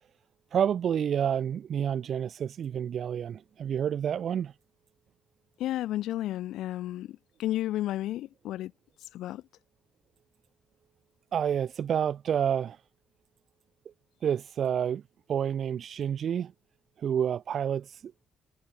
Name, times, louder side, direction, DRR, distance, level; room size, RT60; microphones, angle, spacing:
voice 1, 0.5-4.5 11.3-12.8 14.2-15.0 15.3-16.5 17.0-18.3, right 8 dB, 60° right, 1.8 m, -29 dB
voice 2, 5.6-8.7 9.0-9.4, left 14 dB, 85° left, 1.6 m, -32 dB
cardioid pair, 90°, 0 cm